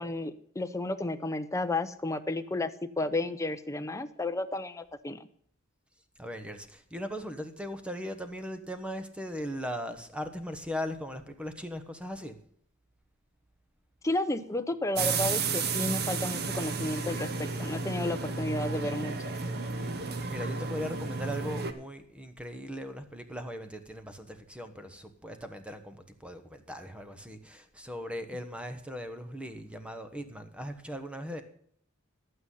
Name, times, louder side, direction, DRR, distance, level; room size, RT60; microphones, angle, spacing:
voice 1, 0.0-2.7 3.0-5.3 14.0-19.1, left 2 dB, 15° left, 0.7 m, -32 dB
voice 2, 6.2-12.4 19.9-31.4, equal, 5° right, 1.1 m, -39 dB
sound 1, 14.9-21.7, right 4 dB, 50° right, 0.9 m, -32 dB
11.5 x 8.9 x 5.6 m
head